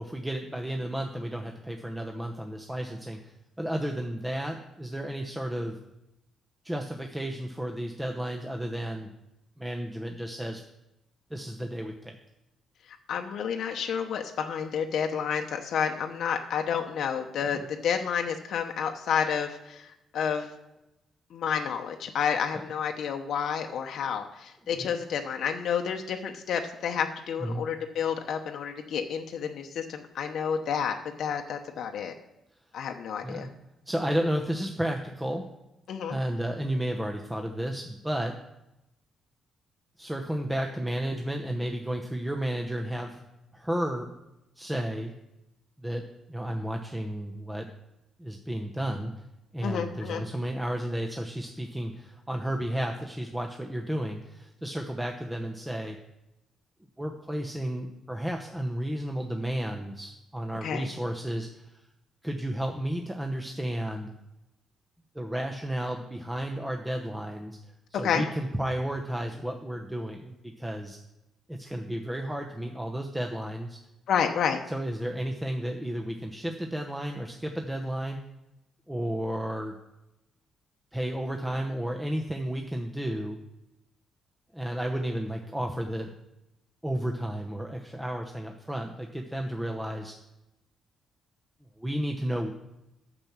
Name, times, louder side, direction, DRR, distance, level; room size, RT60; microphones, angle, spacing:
voice 1, 0.0-5.8 6.6-9.1 9.6-10.6 11.3-12.2 17.5-17.6 24.7-24.8 27.4-27.7 33.2-33.5 33.9-35.5 36.1-38.4 40.0-43.2 43.5-44.1 44.6-45.1 45.8-47.7 48.2-49.1 49.5-56.0 57.0-61.8 62.2-64.1 65.1-67.6 68.0-71.0 71.5-73.8 74.7-78.2 78.9-79.8 80.9-83.4 84.5-86.1 86.8-90.2 91.8-92.5, right 1 dB, 10° right, 3 dB, 1.0 m, -32 dB
voice 2, 12.9-20.5 21.3-32.1 32.7-33.5 35.9-36.2 49.6-50.2 60.6-60.9 67.9-68.2 74.1-74.6, left 7 dB, 70° left, 4 dB, 0.9 m, -30 dB
8.9 x 6.0 x 7.3 m, 0.92 s
cardioid pair, 90°, 0 cm